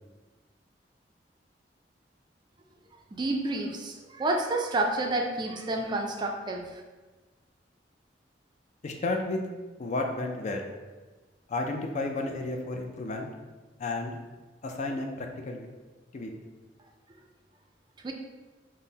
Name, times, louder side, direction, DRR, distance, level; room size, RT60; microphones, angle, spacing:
voice 1, 3.1-6.8 18.0-18.1, right 2 dB, 25° right, 2 dB, 0.3 m, -29 dB
voice 2, 8.8-9.5 9.8-10.6 11.5-13.3 13.8-14.2 14.6-15.7 16.1-16.3, left 2 dB, 40° left, 3 dB, 0.4 m, -32 dB
5.4 x 2.0 x 2.7 m, 1.2 s
head